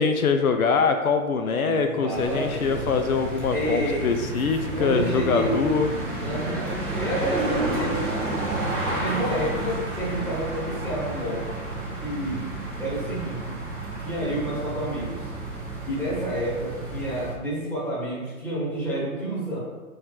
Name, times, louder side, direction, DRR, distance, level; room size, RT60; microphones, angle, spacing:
voice 1, 0.0-5.9, left 5 dB, 75° left, 7 dB, 0.6 m, -23 dB
voice 2, 1.3-3.0 3.5-4.1 4.7-5.6 6.2-8.3 8.5-11.5 12.0-12.5 12.8-13.6 14.0-15.2 15.9-19.6, right 1 dB, 5° left, -9 dB, 1.2 m, -29 dB
sound 1, 2.1-17.3, right 2 dB, 20° right, 1.0 m, -31 dB
3.6 x 3.2 x 4.5 m, 1.2 s
hypercardioid pair, 140°, 43 cm